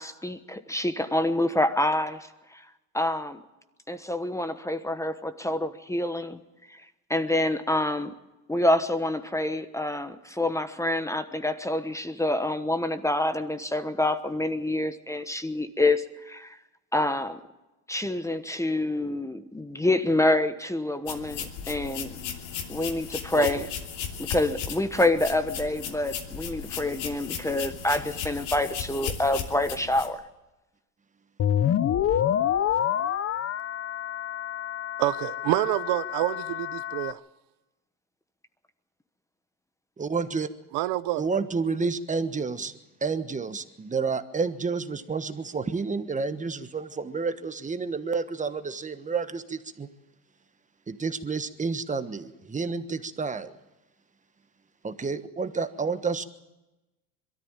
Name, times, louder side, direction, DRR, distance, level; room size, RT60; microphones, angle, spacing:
voice 1, 0.0-2.6 2.9-3.4 3.9-6.4 6.7-6.8 7.1-8.1 8.5-16.6 16.9-17.4 17.9-22.2 22.7-23.7 24.2-30.2, left 1 dB, 5° left, 1.1 m, -27 dB
sound 1, 21.1-30.1, left 7 dB, 75° left, 2.9 m, -36 dB
sound 2, 31.4-37.1, left 10 dB, 35° left, 0.7 m, -27 dB
voice 2, 35.0-37.2 40.7-41.2, right 16 dB, 70° right, 0.8 m, -27 dB
voice 3, 40.0-40.5 41.2-42.7 43.0-49.9 50.9-53.5 54.8-56.2, right 4 dB, 15° right, 1.3 m, -30 dB
22.5 x 13.5 x 8.9 m
supercardioid pair, 110°, 43 cm